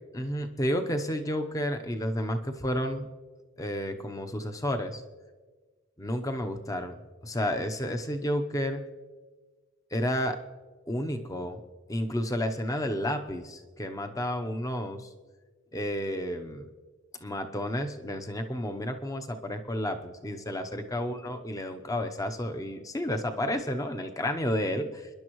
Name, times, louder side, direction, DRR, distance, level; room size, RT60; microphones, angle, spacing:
voice 1, 0.1-3.1 3.6-5.0 6.0-7.0 7.2-8.8 9.9-10.4 10.9-11.6 11.9-15.1 15.7-16.7 17.2-25.1, equal, 15° left, 6 dB, 0.8 m, -31 dB
25.5 x 11.0 x 3.1 m, 1.4 s
head